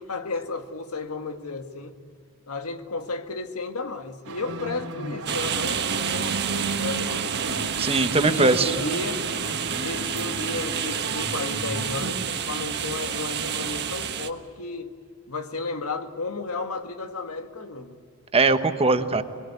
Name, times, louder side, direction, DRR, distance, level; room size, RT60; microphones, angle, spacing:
voice 1, 0.0-2.0 2.5-7.6 8.0-9.3 9.7-14.9 15.3-18.0, left 3 dB, 75° left, 1.7 m, -33 dB
sound 1, 4.2-12.1, right 2 dB, 85° right, 3.4 m, -34 dB
sound 2, 5.3-14.3, right 8 dB, 50° right, 1.3 m, -29 dB
voice 2, 7.8-8.7 18.3-19.2, right 3 dB, 25° right, 1.2 m, -20 dB
25.0 x 22.0 x 9.6 m
head